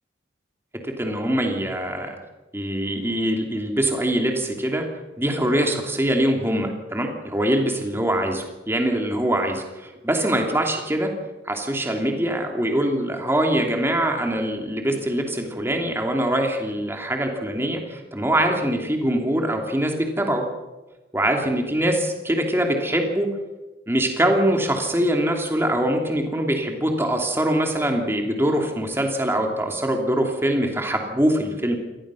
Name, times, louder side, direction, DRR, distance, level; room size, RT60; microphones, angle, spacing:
voice 1, 1.0-2.1 2.5-4.8 5.2-11.1 11.4-20.4 21.1-23.3 23.9-31.7, right 1 dB, 10° right, 2 dB, 2.8 m, -23 dB
26.0 x 18.5 x 6.3 m, 1.2 s
head